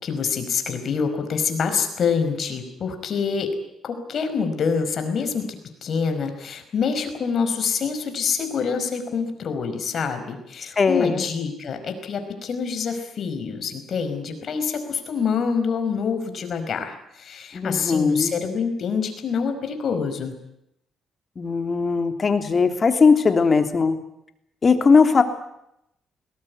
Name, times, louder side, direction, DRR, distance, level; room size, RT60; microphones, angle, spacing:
voice 1, 0.0-3.5 3.8-20.3, left 6 dB, 55° left, 7 dB, 5.2 m, -26 dB
voice 2, 10.8-11.3 17.5-18.4 21.4-24.0 24.6-25.2, left 5 dB, 35° left, 7 dB, 3.1 m, -19 dB
21.0 x 19.0 x 9.7 m, 0.80 s
cardioid pair, 90°, 0 cm